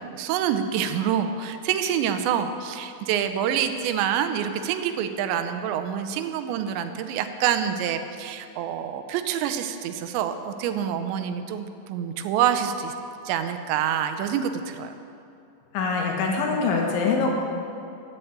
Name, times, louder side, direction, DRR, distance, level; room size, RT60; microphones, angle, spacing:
voice 1, 0.0-12.9 13.3-14.9, right 9 dB, 80° right, 8 dB, 2.9 m, -26 dB
voice 2, 15.7-17.3, left 4 dB, 85° left, 0 dB, 4.1 m, -24 dB
14.5 x 7.9 x 8.8 m, 2.6 s
omnidirectional pair, 5.2 m